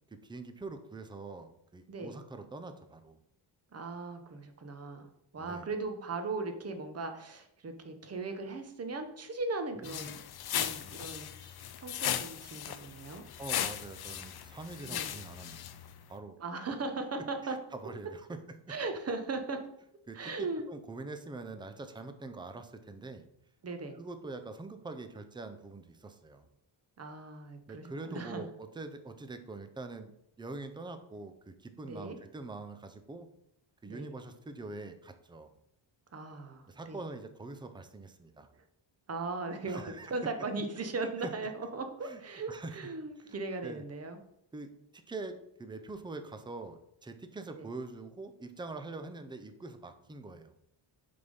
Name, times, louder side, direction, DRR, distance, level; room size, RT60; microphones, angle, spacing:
voice 1, 0.1-3.2 5.4-5.7 9.8-10.1 13.4-15.8 16.1-16.4 17.4-18.4 20.1-23.2 23.9-26.5 27.7-30.1 30.4-33.3 33.8-35.5 36.7-38.5 39.7-40.1 41.0-41.3 42.0-42.2 42.5-42.8 43.2-43.8 44.5-50.5, right 3 dB, 10° right, 8 dB, 0.4 m, -44 dB
voice 2, 3.7-5.1 5.3-10.2 10.5-13.2 14.9-15.1 16.4-17.6 18.7-19.6 20.1-20.6 23.6-24.0 27.0-28.4 31.8-32.2 33.8-34.1 36.1-37.0 39.1-44.2 47.6-47.7, right 3 dB, 30° right, 6 dB, 0.8 m, -38 dB
sound 1, 9.8-16.0, left 10 dB, 50° left, 0.5 m, -37 dB
6.7 x 3.6 x 5.3 m, 0.76 s
wide cardioid pair, 130°, 49 cm